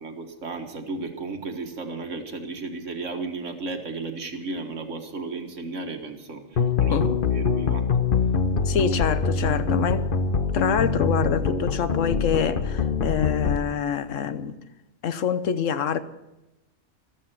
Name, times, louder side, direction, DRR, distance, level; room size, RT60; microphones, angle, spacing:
voice 1, 0.0-7.1 7.3-7.8, right 3 dB, 75° right, 1.9 m, -34 dB
sound 1, 6.6-13.6, left 5 dB, 45° left, 1.1 m, -24 dB
voice 2, 6.9-7.2 8.6-10.0 10.5-14.6 15.0-16.0, left 7 dB, 85° left, 1.2 m, -26 dB
13.5 x 13.5 x 5.9 m
omnidirectional pair, 1.3 m